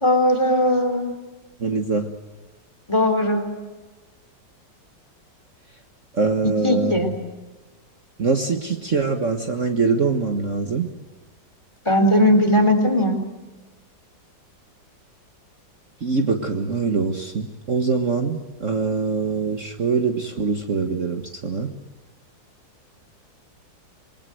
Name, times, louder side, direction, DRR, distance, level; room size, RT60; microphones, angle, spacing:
voice 1, 0.0-1.2 2.9-3.6 6.6-7.1 11.9-13.2, left 1 dB, 15° left, 5 dB, 3.7 m, -18 dB
voice 2, 1.6-2.1 6.1-7.1 8.2-10.9 16.0-21.7, right 4 dB, 45° right, 5 dB, 1.8 m, -23 dB
28.0 x 21.5 x 7.8 m, 1.2 s
omnidirectional pair, 2.0 m